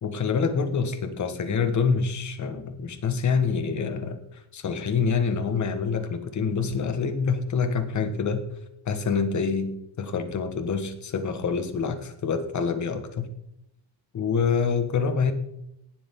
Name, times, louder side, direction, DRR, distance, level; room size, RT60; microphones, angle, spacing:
voice 1, 0.0-8.4 8.8-13.3 14.1-15.3, left 5 dB, 40° left, 8 dB, 1.6 m, -26 dB
18.5 x 12.0 x 3.8 m, 0.82 s
cardioid pair, 175°, 47 cm